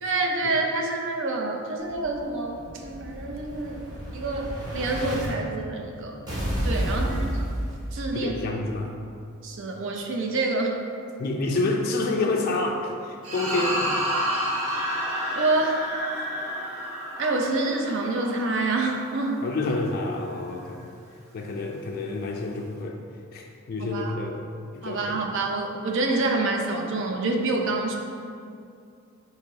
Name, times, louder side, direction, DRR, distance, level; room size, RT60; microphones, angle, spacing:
voice 1, 0.0-3.8 4.1-6.2 6.6-7.5 7.9-8.4 9.4-10.8 15.3-15.8 17.2-19.4 23.8-24.2 24.8-28.0, right 2 dB, 60° right, 2 dB, 0.5 m, -27 dB
Explosion, 1.9-5.3 6.3-8.3, equal, 20° right, 0.7 m, -31 dB
voice 2, 6.8-7.2 8.1-8.9 11.2-13.9 19.4-20.9 21.3-23.0 23.3-24.4 24.8-25.2, left 2 dB, 40° left, 1 dB, 0.3 m, -28 dB
sound 1, 13.2-19.8, equal, 85° right, 0.9 m, -30 dB
3.8 x 2.8 x 4.6 m, 2.4 s
head